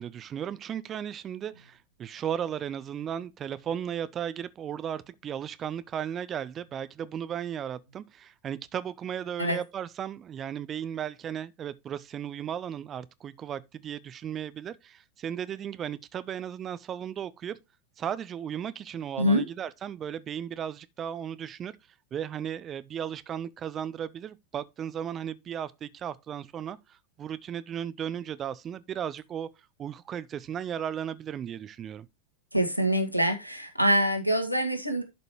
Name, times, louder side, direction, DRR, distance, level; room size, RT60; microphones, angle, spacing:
voice 1, 0.0-17.6 18.0-21.8 22.1-29.5 29.8-32.1, right 9 dB, 25° right, 0.6 m, -35 dB
voice 2, 32.5-35.0, equal, 90° left, 1.7 m, -25 dB
11.5 x 5.4 x 3.0 m
figure-of-eight pair, 90°, 0 cm